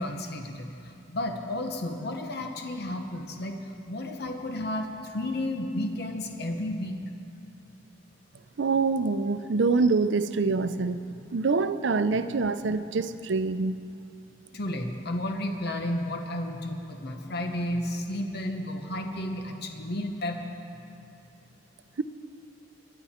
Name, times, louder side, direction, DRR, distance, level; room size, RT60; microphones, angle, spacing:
voice 1, 0.0-7.0 12.1-12.2 14.5-20.5, left 1 dB, 60° left, 4 dB, 1.0 m, -32 dB
voice 2, 8.6-11.0 11.3-13.8, right 4 dB, 70° right, 11 dB, 0.5 m, -25 dB
22.5 x 11.0 x 4.3 m, 2.7 s
head